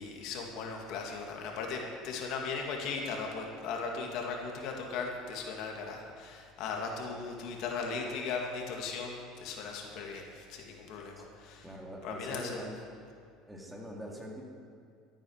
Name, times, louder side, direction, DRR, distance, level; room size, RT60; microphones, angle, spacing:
voice 1, 0.0-11.7 12.0-12.6, left 4 dB, 65° left, 1 dB, 2.2 m, -38 dB
voice 2, 11.6-12.8 13.5-14.4, equal, 5° right, -1 dB, 2.3 m, -43 dB
13.0 x 8.9 x 6.4 m, 2.2 s
supercardioid pair, 115°, 0 cm